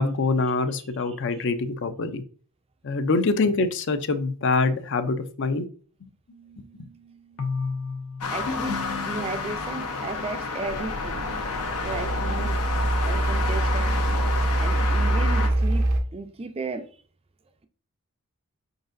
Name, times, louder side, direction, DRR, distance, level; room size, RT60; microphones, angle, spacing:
voice 1, 0.0-2.2 2.8-5.6 6.8-6.9, left 3 dB, 55° left, 0.5 m, -25 dB
voice 2, 1.1-1.4 8.3-11.3 11.8-12.6 13.1-14.0 14.6-16.9, right 3 dB, 25° right, 0.4 m, -35 dB
sound 1, 6.3-9.9, left 4 dB, 70° left, 0.9 m, -34 dB
sound 2, 8.2-15.5, left 3 dB, 90° left, 0.9 m, -30 dB
sound 3, 10.7-16.0, right 1 dB, 80° right, 0.7 m, -25 dB
5.1 x 3.9 x 2.6 m
head